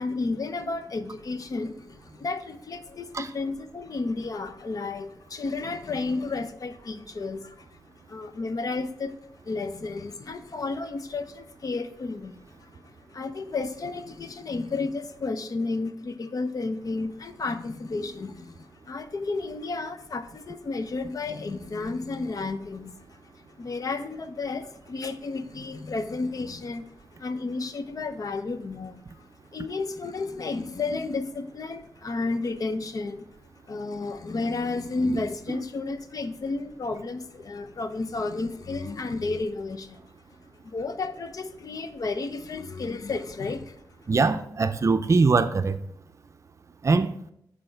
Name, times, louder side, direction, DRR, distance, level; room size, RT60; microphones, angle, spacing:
voice 1, 0.0-7.8 8.1-9.2 9.4-33.3 33.7-40.0 40.6-44.1, left 3 dB, 55° left, 0.6 m, -32 dB
voice 2, 44.1-45.8 46.8-47.1, right 4 dB, 45° right, 0.5 m, -22 dB
7.7 x 4.2 x 4.5 m
wide cardioid pair, 90°, 7 cm